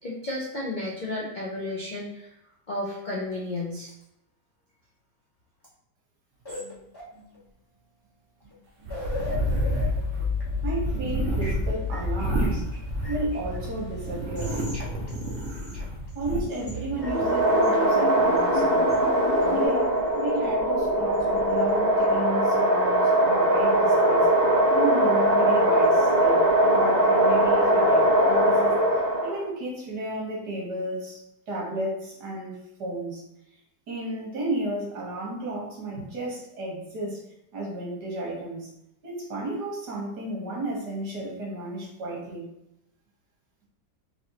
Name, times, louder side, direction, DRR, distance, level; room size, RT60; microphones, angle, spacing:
voice 1, 0.0-2.3 2.7-3.9, left 2 dB, 70° left, -4 dB, 0.4 m, -32 dB
sound 1, 6.4-7.4 8.4-8.5 8.8-16.2 16.5-19.7, left 3 dB, 20° left, 0.8 m, -33 dB
sound 2, 8.9-13.7 14.0-16.4, right 1 dB, 60° right, 0.9 m, -30 dB
voice 2, 10.6-12.7 13.1-14.6 16.1-19.0 19.4-24.3 24.7-28.8 29.2-31.2 31.5-33.2 33.9-37.2 37.5-38.7 39.0-42.4, right 1 dB, 75° right, -3 dB, 1.8 m, -33 dB
sound 3, 17.0-29.4, right 1 dB, 40° right, 0.6 m, -21 dB
4.2 x 2.9 x 2.9 m, 0.85 s
omnidirectional pair, 1.8 m